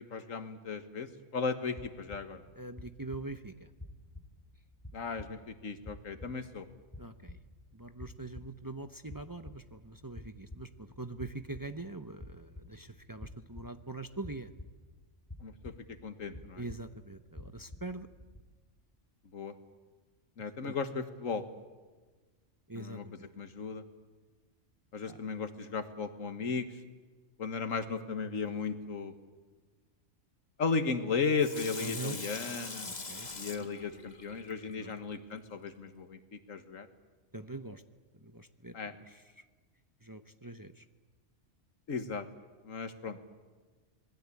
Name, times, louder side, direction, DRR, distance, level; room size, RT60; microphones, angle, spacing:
voice 1, 0.0-2.4 4.9-6.7 15.4-15.7 16.0-16.6 19.3-19.5 20.4-21.4 22.8-23.0 23.4-23.8 24.9-26.7 27.4-29.1 30.6-32.9 33.4-36.2 36.5-36.9 38.7-38.9 41.9-42.2 42.7-43.2, left 5 dB, 75° left, 9 dB, 1.9 m, -35 dB
sound 1, 1.8-18.4, left 1 dB, 10° left, 2.7 m, -51 dB
voice 2, 2.5-3.5 7.0-7.4 7.7-14.5 16.6-18.1 20.6-20.8 22.7-23.3 25.0-25.2 31.8-32.2 32.8-33.3 34.8-35.0 37.3-37.8 38.3-38.7 39.0-39.2 40.0-40.8, right 2 dB, 20° right, 8 dB, 0.7 m, -43 dB
Water tap faucet / Sink (filling or washing), 31.4-35.2 35.7-35.8, left 3 dB, 35° left, 1.6 m, -43 dB
26.0 x 20.0 x 8.5 m, 1.4 s
omnidirectional pair, 1.4 m